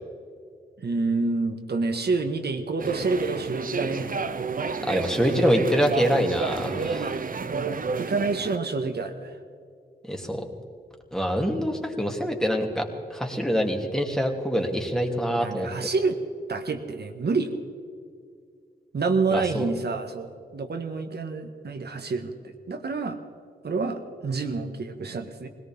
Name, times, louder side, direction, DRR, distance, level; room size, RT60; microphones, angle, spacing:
voice 1, 0.8-4.1 5.3-5.5 7.3-9.3 15.4-16.2 16.5-17.5 18.9-23.2 23.6-25.5, right 4 dB, 65° right, 6 dB, 1.7 m, -28 dB
sound 1, 2.8-8.6, right 5 dB, 50° right, 0.7 m, -31 dB
voice 2, 4.9-7.1 10.1-10.4 11.1-15.7 19.3-19.7, equal, 5° left, 1 dB, 2.7 m, -25 dB
20.5 x 18.5 x 3.7 m, 2.3 s
cardioid pair, 60°, 18 cm